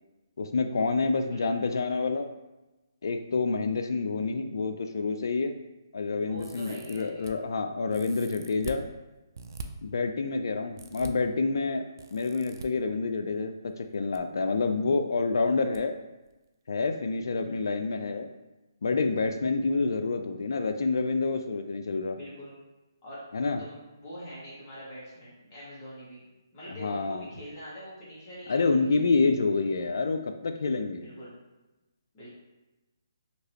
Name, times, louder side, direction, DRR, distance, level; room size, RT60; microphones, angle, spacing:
voice 1, 0.4-2.3 3.0-5.5 5.9-8.8 9.8-11.8 12.1-15.9 16.7-18.3 18.8-22.2 23.3-23.6 26.8-27.3 28.5-31.1, left 4 dB, 65° left, 6 dB, 0.3 m, -28 dB
voice 2, 1.3-1.8 6.2-7.3 17.4-17.5 22.1-22.6 23.0-23.2 23.6-26.2 26.5-28.9 30.9-31.3 32.1-32.3, equal, 30° left, -8 dB, 1.4 m, -44 dB
sound 1, 6.4-7.3 7.9-8.8 9.3-9.7 10.8-11.1 12.0-12.7 13.8-14.2 14.5-14.6 15.7-15.8 16.2-16.3, right 3 dB, 65° right, 0.3 m, -43 dB
3.0 x 2.8 x 2.8 m, 1.0 s
hypercardioid pair, 145°, 2 cm